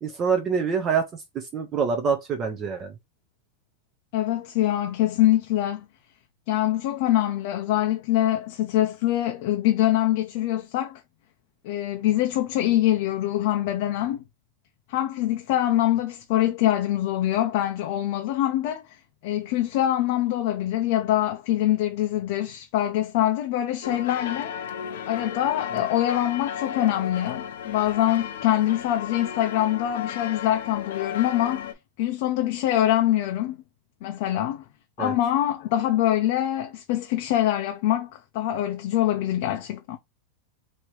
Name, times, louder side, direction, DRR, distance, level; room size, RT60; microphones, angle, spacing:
voice 1, 0.0-2.9 35.0-35.1, right 6 dB, 20° right, 0.5 m, -26 dB
voice 2, 4.1-5.9 6.5-11.0 11.6-14.2 14.9-18.8 19.2-24.5 25.1-31.7 32.0-33.6 34.0-34.6 35.0-40.0, left 13 dB, 45° left, 0.5 m, -24 dB
sound 1, 23.8-31.7, left 8 dB, 85° left, 0.7 m, -34 dB
3.2 x 2.7 x 4.5 m
supercardioid pair, 175°, 0 cm